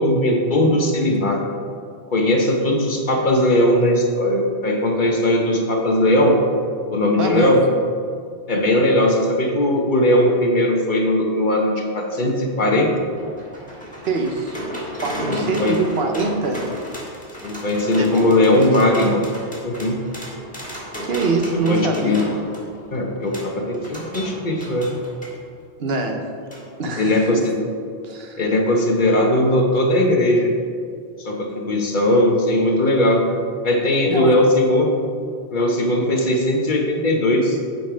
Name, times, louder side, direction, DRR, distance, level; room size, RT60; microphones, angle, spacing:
voice 1, 0.0-1.4 2.1-6.4 6.9-7.6 8.5-12.9 15.3-15.7 17.4-19.2 19.6-20.0 21.7-22.2 22.9-24.9 27.0-27.5 28.4-30.5 31.2-33.2 33.6-35.0 35.5-37.6, left 1 dB, 50° left, 1 dB, 1.0 m, -18 dB
voice 2, 7.2-7.5 14.1-14.6 15.0-16.6 18.0-18.7 21.0-22.2 25.8-26.3 26.8-27.3 28.0-28.4 34.1-34.3, right 3 dB, 65° right, 3 dB, 1.1 m, -24 dB
sound 1, 13.0-25.4 26.5-26.6 27.0-27.1, equal, 5° left, 1.7 m, -34 dB
8.7 x 5.3 x 5.0 m, 2.3 s
omnidirectional pair, 1.1 m